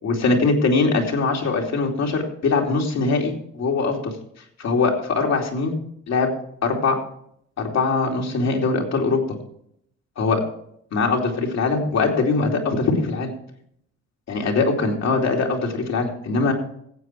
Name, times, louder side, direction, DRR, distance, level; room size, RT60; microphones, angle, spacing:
voice 1, 0.0-4.1 4.6-5.7 6.1-6.3 6.6-7.0 7.6-9.2 10.2-10.4 10.9-13.3 14.3-16.5, left 4 dB, 60° left, 1 dB, 2.8 m, -22 dB
15.5 x 7.6 x 4.5 m, 0.70 s
cardioid pair, 90°, 30 cm